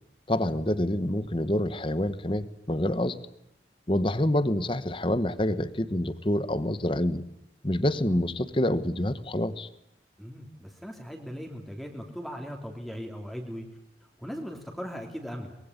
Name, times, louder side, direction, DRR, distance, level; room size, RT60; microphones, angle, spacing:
voice 1, 0.3-3.2 3.9-7.2 7.6-9.7, left 1 dB, 30° left, 14 dB, 1.2 m, -27 dB
voice 2, 10.2-13.7 14.2-15.6, equal, ahead, 1 dB, 3.0 m, -38 dB
24.0 x 22.0 x 9.7 m, 0.77 s
head